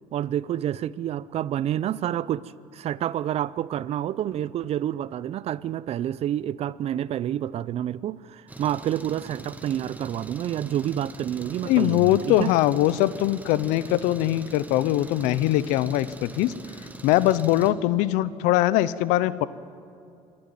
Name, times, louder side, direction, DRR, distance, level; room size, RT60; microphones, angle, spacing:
voice 1, 0.1-12.5, right 11 dB, 55° right, 0.6 m, -28 dB
Engine, 8.5-17.7, right 2 dB, 10° right, 1.7 m, -42 dB
voice 2, 11.7-16.5 17.0-19.5, left 14 dB, 85° left, 0.7 m, -22 dB
26.5 x 12.0 x 9.2 m
supercardioid pair, 85°, 12 cm